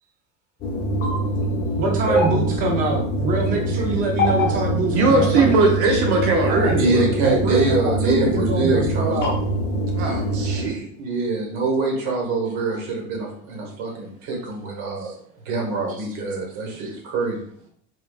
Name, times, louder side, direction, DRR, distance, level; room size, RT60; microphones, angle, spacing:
sound 1, 0.6-10.7, right 1 dB, 30° left, 0.7 m, -24 dB
voice 1, 1.8-5.5 6.4-9.4 10.1-10.2 15.0-15.1 16.0-16.1 16.8-16.9, right 2 dB, 25° right, 0 dB, 0.5 m, -25 dB
voice 2, 4.9-7.1 9.9-10.9, right 3 dB, 90° right, 1 dB, 0.7 m, -20 dB
voice 3, 6.7-9.1 11.0-15.2 15.4-17.4, right 3 dB, 60° right, -1 dB, 1.2 m, -24 dB
3.7 x 2.2 x 2.3 m, 0.65 s
supercardioid pair, 125°, 34 cm